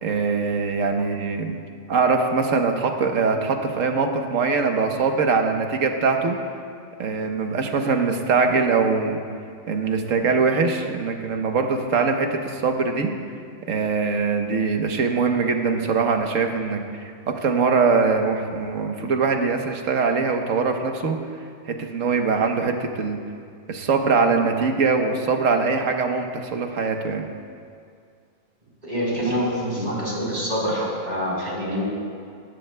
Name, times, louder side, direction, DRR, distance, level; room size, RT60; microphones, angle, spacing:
voice 1, 0.0-1.5 1.9-6.4 7.0-9.2 9.7-13.1 13.7-16.8 17.3-21.2 21.7-23.2 23.7-27.3, right 4 dB, 75° right, 4 dB, 1.4 m, -22 dB
voice 2, 28.8-31.8, equal, 35° right, -6 dB, 4.2 m, -26 dB
19.0 x 15.5 x 2.2 m, 2.3 s
omnidirectional pair, 1.4 m